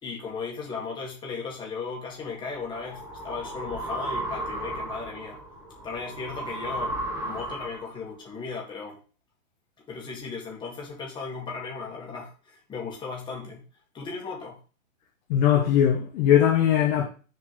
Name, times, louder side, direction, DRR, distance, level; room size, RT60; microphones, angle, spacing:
voice 1, 0.0-5.4 5.8-9.0 9.9-13.6 13.9-14.6, left 4 dB, 10° left, 1.9 m, -36 dB
sound 1, 2.2-8.0, right 1 dB, 5° right, 1.0 m, -35 dB
voice 2, 15.3-17.1, left 10 dB, 30° left, 1.2 m, -20 dB
6.5 x 4.5 x 5.8 m
hypercardioid pair, 155°, 41 cm